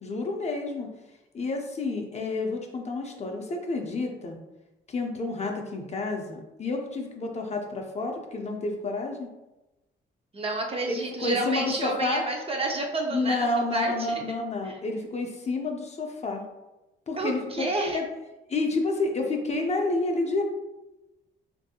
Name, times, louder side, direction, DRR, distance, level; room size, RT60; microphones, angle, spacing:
voice 1, 0.0-0.9 1.3-4.4 4.9-9.3 10.9-12.2 13.1-16.4 17.1-18.0 18.5-20.4, left 2 dB, 35° left, 2 dB, 0.5 m, -29 dB
voice 2, 10.3-13.4 13.7-14.2 14.6-14.8 17.2-18.0, right 2 dB, 30° right, 1 dB, 0.5 m, -30 dB
3.1 x 2.6 x 2.7 m, 1.0 s
cardioid pair, 90°, 20 cm